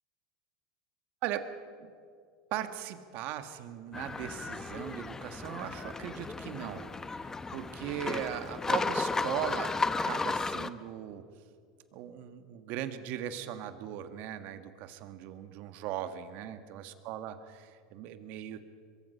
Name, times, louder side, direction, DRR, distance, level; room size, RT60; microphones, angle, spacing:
voice 1, 2.5-11.3 11.9-18.7, right 11 dB, 60° right, 10 dB, 1.7 m, -39 dB
sound 1, 3.9-10.7, left 3 dB, 15° left, 0.8 m, -34 dB
23.0 x 22.5 x 5.7 m, 2.2 s
supercardioid pair, 105°, 4 cm